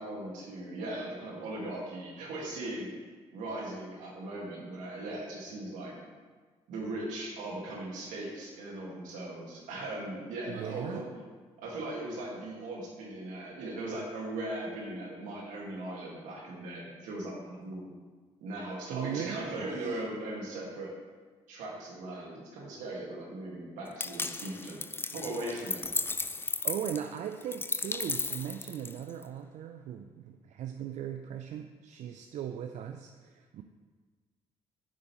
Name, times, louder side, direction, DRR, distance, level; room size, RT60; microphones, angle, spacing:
voice 1, 0.0-3.1 3.3-6.0 6.7-11.1 11.6-17.9 18.4-20.9 21.5-24.8 25.1-25.8, right 1 dB, 85° right, -3 dB, 1.9 m, -39 dB
voice 2, 10.5-11.0 18.9-20.0 26.6-33.6, right 9 dB, 70° right, 6 dB, 0.5 m, -38 dB
sound 1, 24.0-29.2, left 3 dB, 15° left, 0.4 m, -35 dB
9.1 x 7.6 x 3.1 m, 1.4 s
supercardioid pair, 55°, 13 cm